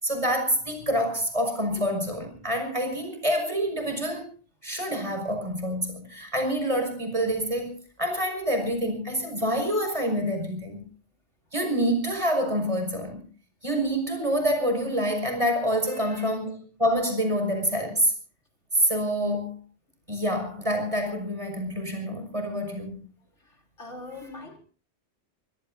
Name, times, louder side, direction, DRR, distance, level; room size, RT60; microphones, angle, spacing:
voice 1, 0.0-4.3 4.6-7.7 8.0-10.8 11.5-13.2 13.6-18.1 18.7-19.5 20.1-23.0, equal, 30° right, 5 dB, 6.0 m, -27 dB
voice 2, 15.9-16.3 23.8-24.6, left 2 dB, 85° left, 2 dB, 4.4 m, -42 dB
25.5 x 20.5 x 2.7 m, 0.37 s
omnidirectional pair, 1.2 m